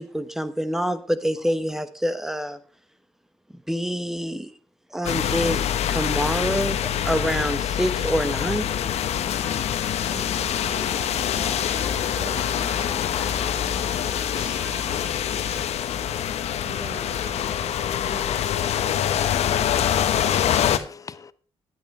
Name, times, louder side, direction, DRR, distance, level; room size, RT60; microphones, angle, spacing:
voice 1, 0.0-2.6 3.7-4.5 4.9-8.7, equal, 5° right, 1.1 m, -26 dB
sound 1, 5.0-20.8, left 10 dB, 80° left, 1.2 m, -25 dB
sound 2, 9.3-15.6, equal, 25° right, 3.1 m, -43 dB
voice 2, 9.9-11.7 12.2-14.8 16.7-19.1, right 5 dB, 45° right, 2.2 m, -44 dB
voice 3, 15.6-16.7 19.8-21.3, left 5 dB, 30° left, 0.8 m, -45 dB
16.0 x 11.0 x 3.3 m
wide cardioid pair, 145°, 11 cm